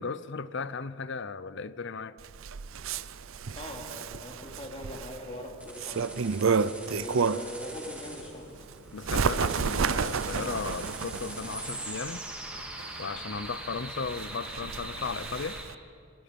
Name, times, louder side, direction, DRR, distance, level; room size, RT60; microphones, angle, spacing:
voice 1, 0.0-2.2 8.9-12.3 13.0-15.6, left 5 dB, 55° left, 0.6 m, -36 dB
Bird, 2.2-7.6 8.1-15.7, right 5 dB, 65° right, 0.6 m, -32 dB
sound 1, 2.9-15.6, right 1 dB, 5° right, 2.7 m, -42 dB
voice 2, 3.5-6.2 6.9-8.4, left 1 dB, 30° left, 2.7 m, -41 dB
25.0 x 20.5 x 5.3 m
head